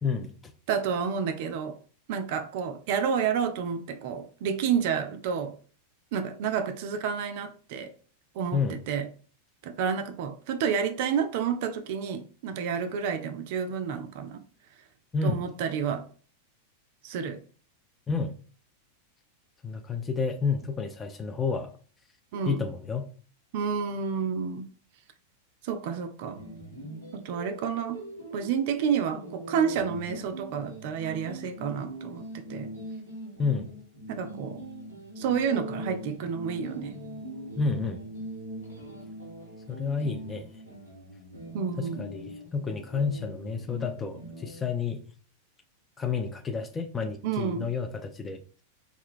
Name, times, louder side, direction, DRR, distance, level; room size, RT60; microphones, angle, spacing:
voice 1, 0.0-0.5 8.5-8.8 15.1-15.4 18.1-18.4 19.6-21.8 22.5-23.1 33.4-33.7 37.6-38.0 39.7-40.6 41.8-45.0 46.0-48.4, left 5 dB, 20° left, 0.4 m, -30 dB
voice 2, 0.7-1.8 2.1-5.6 6.1-7.9 8.3-9.1 9.6-14.4 15.2-16.1 17.0-17.4 22.3-22.6 23.5-24.7 25.6-26.4 27.1-28.0 28.3-32.7 34.1-34.6 35.2-37.0 41.5-42.0 47.2-47.7, right 7 dB, 50° right, 0.3 m, -30 dB
sound 1, 26.3-44.7, right 1 dB, 90° left, 0.9 m, -42 dB
2.4 x 2.2 x 3.6 m
figure-of-eight pair, 90°, 0 cm